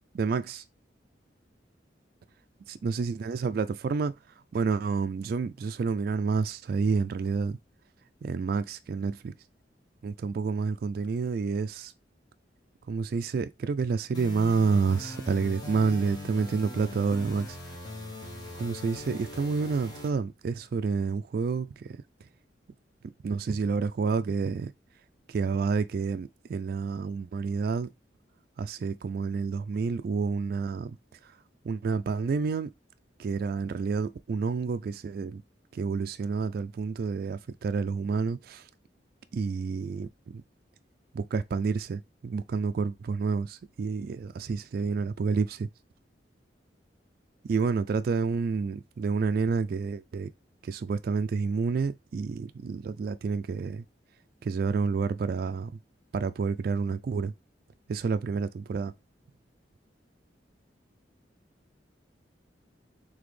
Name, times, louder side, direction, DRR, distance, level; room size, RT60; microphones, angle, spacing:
voice 1, 0.1-0.6 2.7-4.1 4.5-7.6 8.2-9.3 10.0-11.9 12.9-17.6 18.5-21.8 23.2-24.7 25.3-27.9 28.6-31.0 31.6-32.7 33.2-35.4 35.7-38.6 39.3-40.4 41.1-45.7 47.4-50.3 50.6-53.8 54.4-55.7 56.1-57.3 57.9-58.9, right 5 dB, 55° right, 0.3 m, -29 dB
sound 1, 14.1-20.1, left 1 dB, 25° left, 0.9 m, -40 dB
4.0 x 3.3 x 3.2 m
head